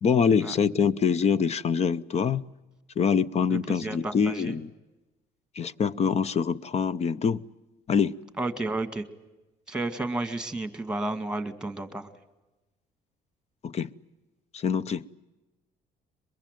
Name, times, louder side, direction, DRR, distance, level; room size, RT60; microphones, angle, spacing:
voice 1, 0.0-2.5 3.0-4.7 5.6-7.4 7.9-8.2 13.6-13.9 14.5-15.1, left 6 dB, 40° left, 0.8 m, -25 dB
voice 2, 3.5-4.5 8.4-9.0 9.7-12.1, right 2 dB, 5° right, 2.1 m, -32 dB
22.5 x 22.5 x 9.2 m
cardioid pair, 110°, 17 cm